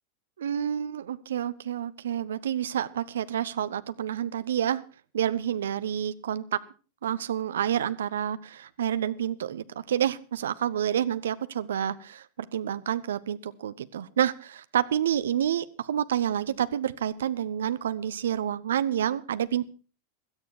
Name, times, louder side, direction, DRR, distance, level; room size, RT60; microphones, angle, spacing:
voice 1, 0.4-4.8 5.1-6.6 7.0-19.6, right 10 dB, 65° right, 13 dB, 0.9 m, -29 dB
16.0 x 13.0 x 4.6 m, 0.37 s
figure-of-eight pair, 90°, 0 cm